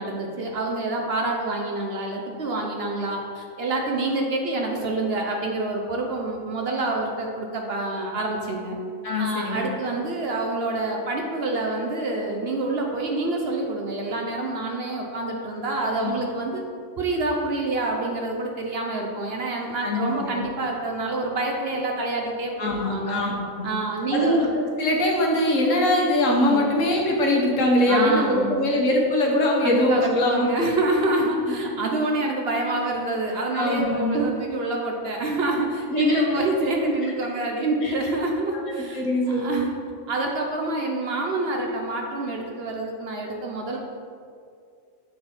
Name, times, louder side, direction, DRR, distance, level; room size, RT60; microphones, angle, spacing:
voice 1, 0.0-8.8 9.2-16.6 17.0-23.2 23.6-24.4 26.4-26.8 27.9-28.6 29.6-39.7 40.1-43.8, right 2 dB, 55° right, 1 dB, 0.8 m, -27 dB
voice 2, 9.0-9.6 16.0-16.2 19.8-20.4 22.6-23.3 23.6-23.7 24.1-30.6 33.5-34.2 35.9-36.5 37.8-37.9 38.6-39.7, left 1 dB, 70° left, -1 dB, 1.4 m, -22 dB
7.5 x 4.0 x 4.2 m, 2.3 s
omnidirectional pair, 1.4 m